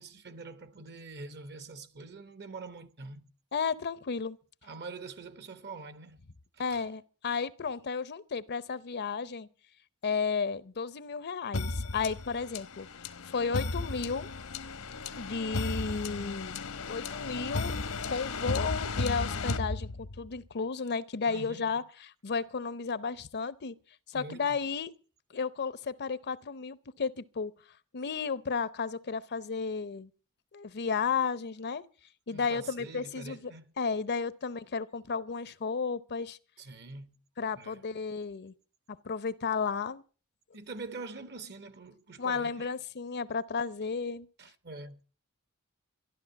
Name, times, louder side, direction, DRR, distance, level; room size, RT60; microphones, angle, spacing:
voice 1, 0.0-3.3 4.6-6.2 6.5-6.9 21.3-21.7 24.1-24.6 32.3-33.7 36.6-37.2 37.5-37.8 40.5-42.7 44.4-45.0, right 3 dB, 50° right, 1.2 m, -45 dB
voice 2, 3.5-4.4 6.6-9.5 10.0-12.9 13.3-14.3 15.2-16.5 16.9-23.7 24.1-24.9 25.3-27.5 27.9-30.1 30.5-31.8 32.3-33.5 33.8-36.4 37.4-38.5 39.0-40.0 42.2-44.3, left 5 dB, 50° left, 0.7 m, -33 dB
sound 1, 11.5-20.4, left 3 dB, 80° left, 1.1 m, -35 dB
13.0 x 12.0 x 7.0 m
head